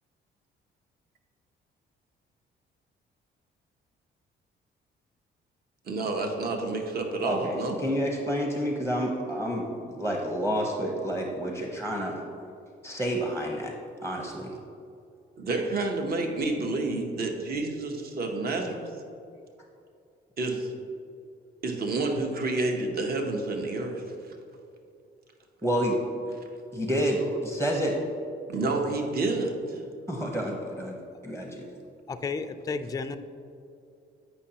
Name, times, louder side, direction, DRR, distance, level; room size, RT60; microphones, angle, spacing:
voice 1, 5.9-7.8 15.4-18.9 20.4-20.7 21.6-24.0 28.5-29.8, right 2 dB, 50° right, 3 dB, 0.9 m, -29 dB
voice 2, 7.2-12.2 12.8-13.7 14.0-14.5 25.6-26.0 26.7-28.0 30.1-31.0 31.2-31.6, equal, 15° right, 0 dB, 0.8 m, -29 dB
voice 3, 32.1-33.2, left 4 dB, 20° left, 9 dB, 0.3 m, -32 dB
8.1 x 5.4 x 2.8 m, 2.5 s
cardioid pair, 90°, 20 cm